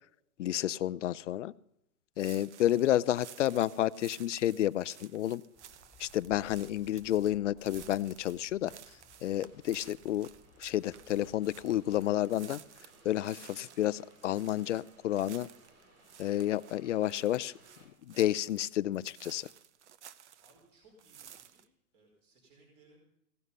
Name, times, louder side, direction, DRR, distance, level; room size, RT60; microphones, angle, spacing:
voice 1, 0.4-1.5 2.2-5.4 6.0-8.7 9.2-10.3 10.6-12.6 13.0-15.5 16.2-17.5 18.0-19.5, left 12 dB, 55° left, 18 dB, 0.5 m, -30 dB
sound 1, 2.2-20.7 21.0-21.6, right 9 dB, 55° right, 0.8 m, -55 dB
sound 2, 5.5-12.1, left 3 dB, 15° left, 2.6 m, -60 dB
sound 3, 8.8-17.9, right 2 dB, 80° right, 7.8 m, -62 dB
voice 2, 20.4-21.6 21.9-23.0, right 2 dB, 25° right, 0 dB, 4.6 m, -63 dB
16.5 x 11.0 x 5.4 m, 0.77 s
hypercardioid pair, 165°, 43 cm